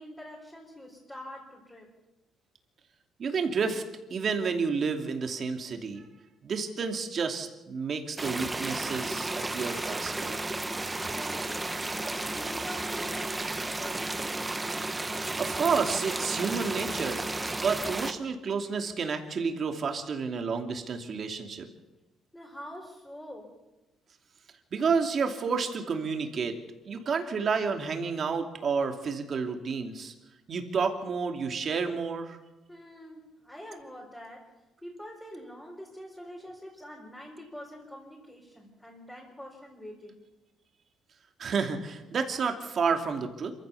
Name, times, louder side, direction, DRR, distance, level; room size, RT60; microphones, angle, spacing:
voice 1, 0.0-1.9 11.1-14.4 17.6-17.7 22.3-23.5 32.7-34.5 34.8-40.2, equal, 5° left, -3 dB, 4.4 m, -45 dB
voice 2, 3.2-3.8 4.1-6.0 6.4-10.4 15.4-17.2 17.6-21.7 24.7-26.5 26.9-30.1 30.5-32.4 41.4-43.5, right 5 dB, 40° right, 4 dB, 2.7 m, -30 dB
sound 1, 8.2-18.1, right 2 dB, 15° right, 1.2 m, -33 dB
27.0 x 15.0 x 7.1 m, 1.1 s
cardioid pair, 140°, 0 cm